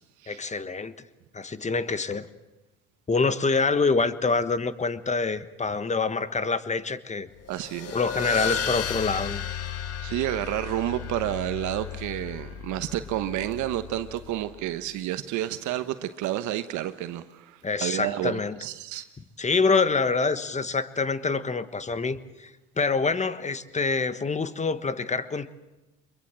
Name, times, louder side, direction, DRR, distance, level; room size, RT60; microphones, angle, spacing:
voice 1, 0.3-0.9 1.3-2.3 3.1-7.3 7.9-9.4 17.6-18.6 19.4-22.5 22.8-25.5, left 4 dB, 25° left, 13 dB, 1.3 m, -26 dB
sound 1, 7.4-14.5, left 8 dB, 55° left, 1.8 m, -34 dB
voice 2, 7.5-8.0 10.0-19.0, right 13 dB, 70° right, 10 dB, 1.2 m, -30 dB
24.5 x 22.0 x 7.6 m, 1.1 s
supercardioid pair, 85°, 30 cm